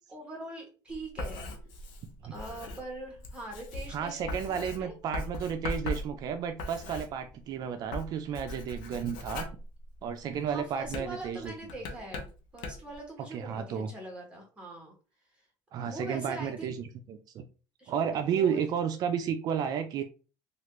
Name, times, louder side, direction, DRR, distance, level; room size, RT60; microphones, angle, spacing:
voice 1, 0.1-1.5 2.3-5.0 10.5-14.9 15.8-16.7 17.8-18.7, right 1 dB, 15° right, -1 dB, 1.4 m, -43 dB
Writing, 0.9-7.5 7.8-10.3 10.8-13.0, left 2 dB, 75° left, 0.7 m, -39 dB
voice 2, 3.9-9.4 10.0-11.5 13.3-13.9 15.7-17.4 17.9-20.0, right 8 dB, 50° right, 7 dB, 0.4 m, -32 dB
3.1 x 2.4 x 3.0 m, 0.35 s
cardioid pair, 125°, 8 cm